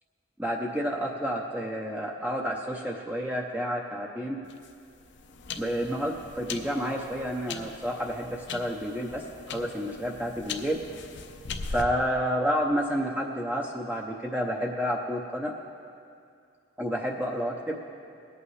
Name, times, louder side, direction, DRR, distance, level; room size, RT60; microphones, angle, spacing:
voice 1, 0.4-4.4 5.6-10.8 11.7-15.5 16.8-17.8, equal, 10° right, -1 dB, 0.6 m, -30 dB
sound 1, 4.4-11.8, left 4 dB, 65° left, 0.6 m, -40 dB
19.0 x 8.4 x 3.2 m, 2.4 s
head